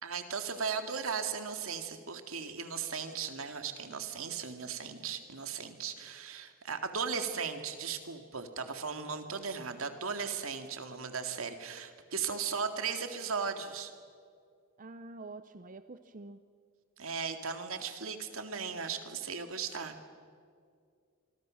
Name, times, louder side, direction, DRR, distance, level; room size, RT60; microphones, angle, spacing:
voice 1, 0.0-13.9 17.0-19.9, right 6 dB, 80° right, 7 dB, 2.2 m, -37 dB
voice 2, 14.8-16.4, right 3 dB, 40° right, 11 dB, 0.6 m, -47 dB
25.5 x 24.5 x 6.4 m, 2.2 s
head